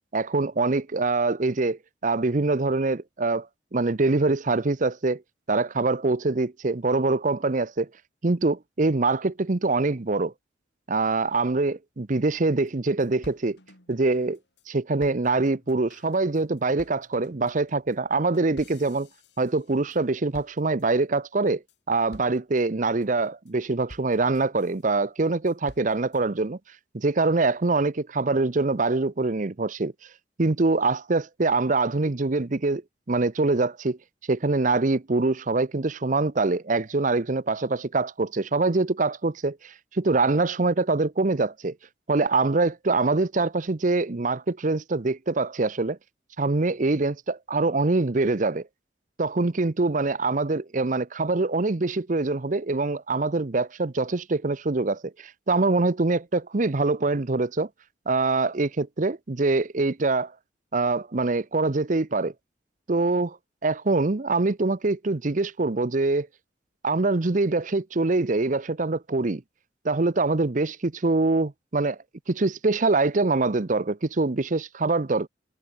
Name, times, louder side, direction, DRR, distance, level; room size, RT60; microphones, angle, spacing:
voice 1, 0.1-3.5 3.7-5.2 5.5-7.9 8.2-10.3 10.9-13.6 13.9-14.4 14.7-19.1 19.4-21.6 21.9-26.6 26.9-29.9 30.4-32.8 33.1-34.0 34.3-41.7 42.1-46.0 46.4-48.6 49.2-57.7 58.1-60.3 60.7-62.3 62.9-63.4 63.6-66.3 66.8-69.4 69.8-72.0 72.3-75.3, right 3 dB, 45° right, 0.7 m, -24 dB
sound 1, 12.3-12.4 12.7-12.8 13.0-14.7 15.0-20.0 20.3-21.0 21.5-21.8 22.1-22.6 23.0-23.5 23.9-24.8 25.2-26.2, left 1 dB, 65° left, 6.7 m, -51 dB
head